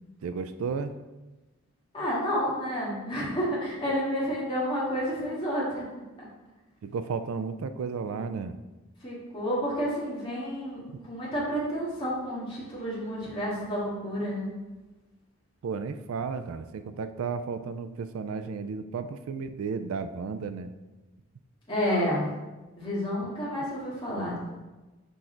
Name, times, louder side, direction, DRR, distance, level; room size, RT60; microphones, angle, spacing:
voice 1, 0.2-0.9 6.8-8.6 15.6-20.7, right 5 dB, 70° right, 10 dB, 0.3 m, -33 dB
voice 2, 1.9-5.9 6.2-6.3 9.0-14.5 21.7-22.3 22.8-24.5, equal, 25° left, -7 dB, 1.9 m, -30 dB
6.2 x 4.5 x 3.8 m, 1.1 s
head